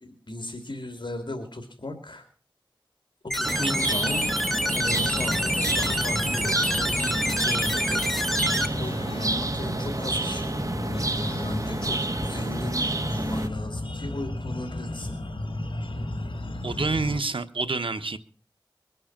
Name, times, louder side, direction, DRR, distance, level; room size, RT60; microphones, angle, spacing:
voice 1, 0.0-2.2 3.2-4.3 4.7-8.4 8.7-15.2, left 1 dB, 65° left, 2.7 m, -36 dB
sound 1, 3.3-8.7, equal, ahead, 1.7 m, -27 dB
sound 2, 3.4-13.5, right 2 dB, 40° right, 1.3 m, -29 dB
sound 3, 4.9-17.2, left 1 dB, 80° left, 1.8 m, -34 dB
voice 2, 16.6-18.2, right 3 dB, 85° right, 1.1 m, -28 dB
22.5 x 7.9 x 7.4 m
wide cardioid pair, 50°, 9 cm